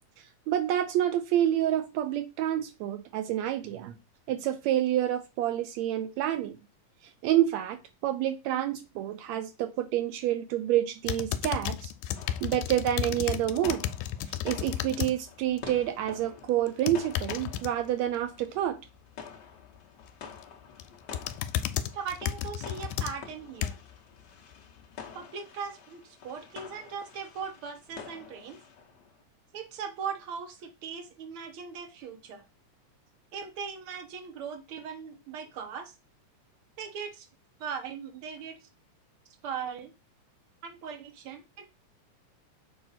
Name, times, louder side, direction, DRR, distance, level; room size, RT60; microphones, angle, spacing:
voice 1, 0.5-4.0 4.3-6.6 7.2-11.9 12.4-13.9 14.4-18.8, right 12 dB, 80° right, 9 dB, 1.7 m, -28 dB
sound 1, 11.0-15.1 15.5-15.9 16.7-17.7 20.1-20.4 20.8-24.0 24.5-24.6, left 11 dB, 90° left, 2.0 m, -33 dB
sound 2, 12.1-29.2, left 6 dB, 70° left, 1.0 m, -48 dB
voice 2, 21.9-23.8 25.1-28.6 29.5-32.4 33.3-35.9 36.8-37.3 37.6-38.6 39.4-39.9 40.6-41.7, right 6 dB, 60° right, 6 dB, 1.5 m, -39 dB
6.8 x 2.5 x 5.6 m, 0.25 s
omnidirectional pair, 3.4 m